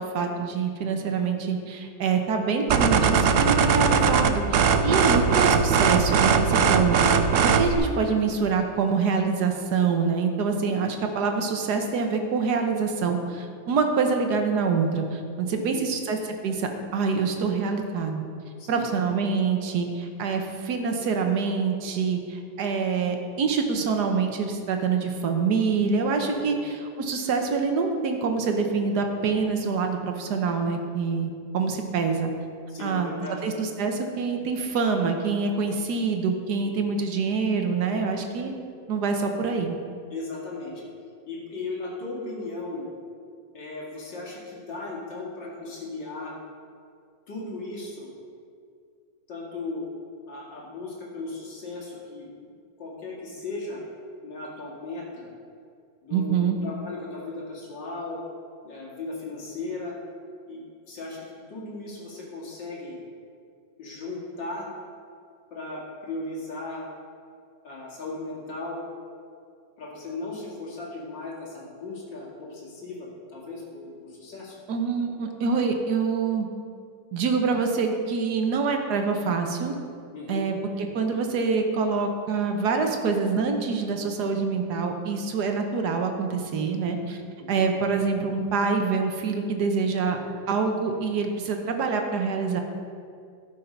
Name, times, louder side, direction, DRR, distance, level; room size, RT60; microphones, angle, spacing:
voice 1, 0.0-16.2 16.4-18.2 18.7-32.3 32.8-38.5 38.9-39.8 56.1-56.6 74.7-76.5 77.1-79.7 80.3-80.5 80.9-87.2 87.5-90.2 90.5-92.6, right 5 dB, 65° right, 4 dB, 1.4 m, -26 dB
sound 1, 2.7-7.7, right 6 dB, 85° right, 0.6 m, -20 dB
voice 2, 15.5-16.0 18.6-18.9 26.3-26.6 32.7-33.5 36.6-36.7 40.1-40.9 41.3-42.8 43.5-46.4 47.3-48.1 49.3-49.8 50.3-52.3 52.8-53.8 54.2-55.3 56.0-58.2 58.6-59.9 60.5-63.0 63.8-64.7 65.5-66.8 67.6-68.8 69.8-74.6 80.1-80.4 87.4-87.6, left 3 dB, 70° left, -4 dB, 2.8 m, -37 dB
13.0 x 5.8 x 5.2 m, 2.3 s
omnidirectional pair, 2.0 m